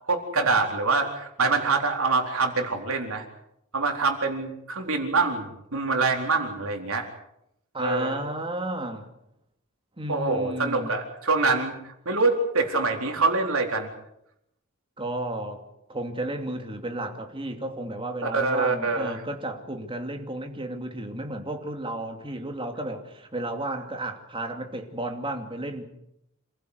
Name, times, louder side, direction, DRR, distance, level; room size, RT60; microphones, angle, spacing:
voice 1, 0.1-3.2 3.7-7.0 7.8-8.2 10.1-13.9 18.2-19.2, right 3 dB, 70° right, 3 dB, 4.2 m, -25 dB
voice 2, 7.7-9.1 10.0-10.9 15.0-15.6 15.9-25.8, right 1 dB, 25° right, 4 dB, 2.7 m, -33 dB
27.5 x 15.5 x 8.2 m, 0.80 s
head